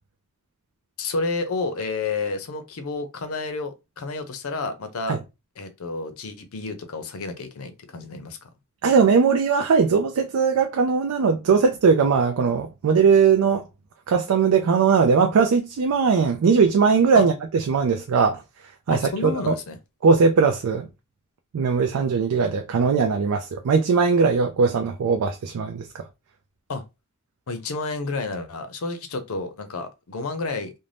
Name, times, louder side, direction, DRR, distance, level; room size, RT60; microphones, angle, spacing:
voice 1, 1.0-5.2 5.6-8.5 17.1-17.2 18.9-19.8 26.7-26.8 27.5-30.7, left 3 dB, 80° left, 0.6 m, -30 dB
voice 2, 8.8-13.6 14.1-18.4 18.9-19.5 20.0-20.9 21.5-25.9, right 5 dB, 90° right, 0.4 m, -19 dB
2.6 x 2.1 x 3.2 m
head